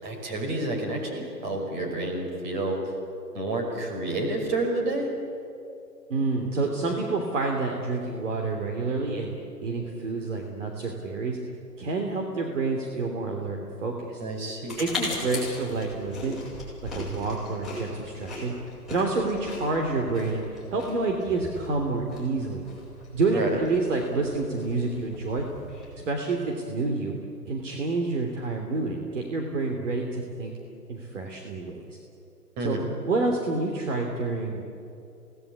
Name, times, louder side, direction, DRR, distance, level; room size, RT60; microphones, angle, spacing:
voice 1, 0.0-2.8 3.3-5.1 14.2-14.8 23.3-23.5 32.6-32.9, right 2 dB, 30° right, 2 dB, 5.5 m, -29 dB
voice 2, 6.1-9.3 9.6-11.4 11.8-14.2 14.7-16.4 16.9-18.5 18.9-22.6 23.1-25.4 26.0-27.1 27.5-30.5 30.9-31.8 32.6-32.8 33.0-34.7, right 3 dB, 50° right, 1 dB, 3.3 m, -28 dB
sound 1, 14.7-26.0, left 2 dB, ahead, 7.5 m, -39 dB
28.5 x 19.0 x 8.6 m, 2.7 s
figure-of-eight pair, 145°, 49 cm